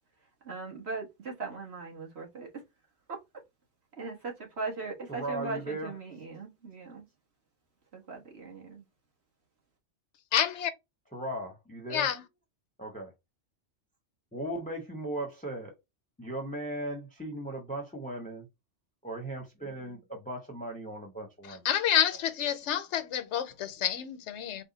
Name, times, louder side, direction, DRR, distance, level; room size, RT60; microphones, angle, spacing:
voice 1, 0.4-2.6 3.1-3.4 4.0-7.1 7.9-8.9, right 4 dB, 55° right, 1.6 m, -39 dB
voice 2, 5.1-5.9 11.1-12.1 12.8-13.1 14.3-15.7 16.2-18.5 19.0-21.6, right 1 dB, 10° left, 0.7 m, -37 dB
voice 3, 10.3-10.7 11.9-12.2 21.5-24.6, left 10 dB, 70° left, 1.0 m, -29 dB
4.2 x 2.2 x 3.9 m
omnidirectional pair, 1.3 m